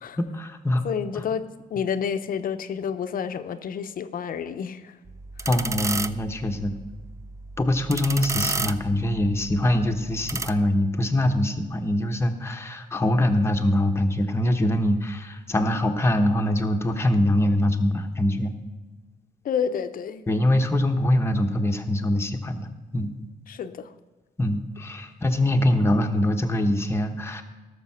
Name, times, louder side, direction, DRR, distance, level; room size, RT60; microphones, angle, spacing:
voice 1, 0.2-0.8 1.1-1.2 5.5-6.7 7.6-18.5 20.3-22.7 22.9-23.1 24.4-27.4, left 1 dB, 15° left, 5 dB, 1.0 m, -23 dB
voice 2, 0.8-1.4 1.7-4.9 19.4-20.2 23.5-23.9, left 7 dB, 70° left, 10 dB, 0.8 m, -29 dB
sound 1, 5.1-10.5, right 3 dB, 20° right, 0.4 m, -33 dB
17.5 x 6.9 x 5.7 m, 1.3 s
wide cardioid pair, 145°, 15 cm